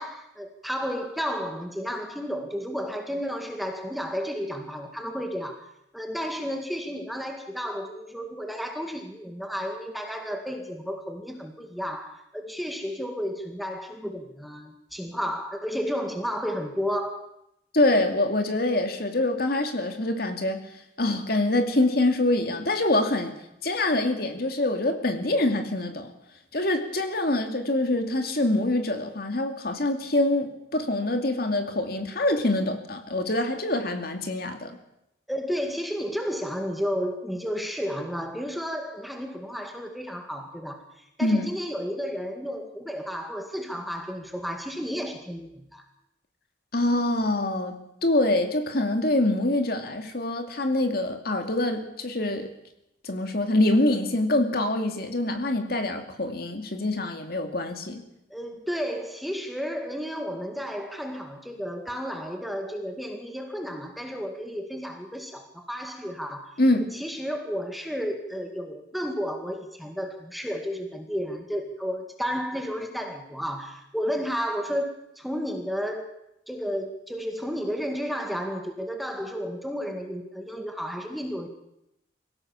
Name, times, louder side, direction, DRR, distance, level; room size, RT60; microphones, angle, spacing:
voice 1, 0.0-5.6 5.9-17.2 35.3-45.8 58.3-66.5 66.9-76.1 76.5-81.5, equal, ahead, 3 dB, 2.1 m, -32 dB
voice 2, 17.7-20.6 21.0-23.3 23.6-26.1 26.5-34.8 41.2-41.5 46.7-47.7 48.0-52.5 53.0-58.0 66.6-66.9, left 1 dB, 50° left, 6 dB, 2.4 m, -25 dB
24.5 x 16.5 x 7.3 m, 0.83 s
head